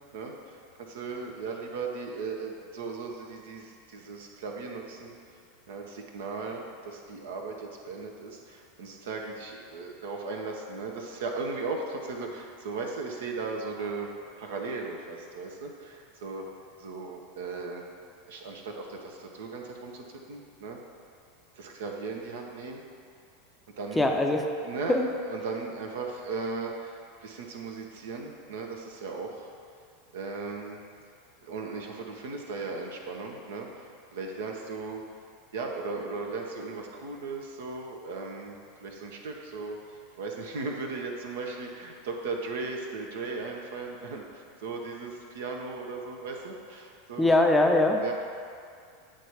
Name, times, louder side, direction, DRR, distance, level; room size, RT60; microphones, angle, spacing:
voice 1, 0.1-5.4 5.7-14.1 14.4-16.4 16.8-17.8 18.3-20.8 21.5-22.8 23.8-24.0 24.6-25.0 25.3-29.5 30.1-30.8 31.4-35.0 35.5-47.3 48.0-48.1, right 4 dB, 65° right, 1 dB, 0.9 m, -37 dB
voice 2, 24.0-24.5 24.9-25.1 47.2-48.1, left 2 dB, 10° left, 2 dB, 0.6 m, -22 dB
8.7 x 3.4 x 5.6 m, 2.3 s
figure-of-eight pair, 85°, 0 cm